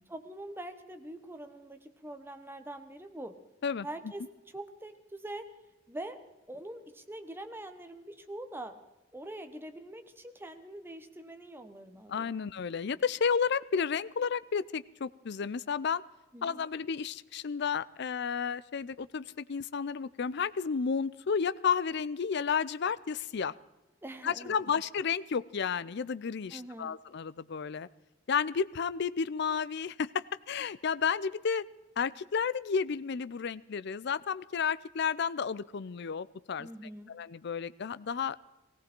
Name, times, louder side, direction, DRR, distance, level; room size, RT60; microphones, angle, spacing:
voice 1, 0.0-3.4 3.8-4.3 4.5-5.5 5.9-8.8 9.1-12.4 16.3-16.7 24.0-24.5 26.5-27.0 36.6-37.1, right 1 dB, 10° right, 7 dB, 1.2 m, -44 dB
voice 2, 12.1-16.0 16.4-23.5 24.2-27.9 28.3-31.7 32.0-36.7 37.1-38.4, left 6 dB, 60° left, 17 dB, 0.5 m, -32 dB
18.5 x 17.0 x 4.5 m, 1.0 s
head